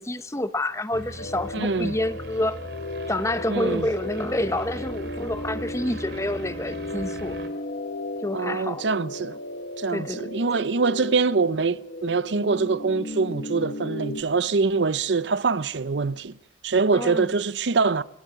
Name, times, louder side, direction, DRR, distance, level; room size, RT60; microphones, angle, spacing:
voice 1, 0.0-2.6 3.1-7.4 8.2-8.8 9.9-10.3 16.9-17.3, left 1 dB, 15° left, 0.9 m, -28 dB
sound 1, 0.9-7.5, right 1 dB, 65° right, 3.2 m, -40 dB
sound 2, 1.2-14.2, left 1 dB, 75° left, 1.3 m, -35 dB
voice 2, 1.5-2.0 3.5-3.9 8.3-9.4 9.8-16.4 16.6-18.0, right 4 dB, 90° right, 0.7 m, -24 dB
27.5 x 13.0 x 7.7 m
head